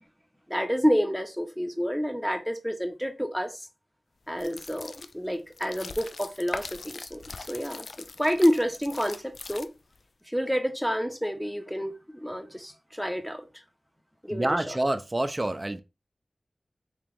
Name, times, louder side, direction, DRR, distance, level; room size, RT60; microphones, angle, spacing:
voice 1, 0.5-3.7 4.3-7.9 8.2-9.7 10.3-13.4 14.2-14.8, equal, 5° left, 0.9 m, -29 dB
sound 1, 4.3-10.0, left 3 dB, 75° left, 0.3 m, -41 dB
voice 2, 14.3-15.8, right 1 dB, 30° right, 0.5 m, -27 dB
3.0 x 2.9 x 3.5 m
wide cardioid pair, 55°, 0 cm